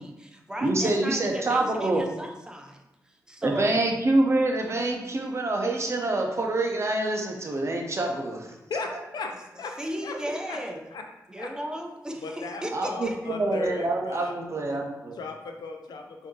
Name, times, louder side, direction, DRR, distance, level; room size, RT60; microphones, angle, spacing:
voice 1, 0.0-3.8 9.8-10.8 11.3-13.3, equal, 10° right, 2 dB, 0.6 m, -36 dB
voice 2, 0.6-2.0 3.4-8.5 8.9-9.0 12.7-15.2, right 2 dB, 40° right, 1 dB, 0.8 m, -26 dB
voice 3, 8.7-9.3 9.6-9.8 10.0-10.2 10.4-10.6 10.9-11.0 11.4-11.5 12.2-14.4 14.7-14.8 15.2-16.3, left 4 dB, 85° left, 4 dB, 0.5 m, -36 dB
4.2 x 2.7 x 3.1 m, 0.94 s
cardioid pair, 55°, 7 cm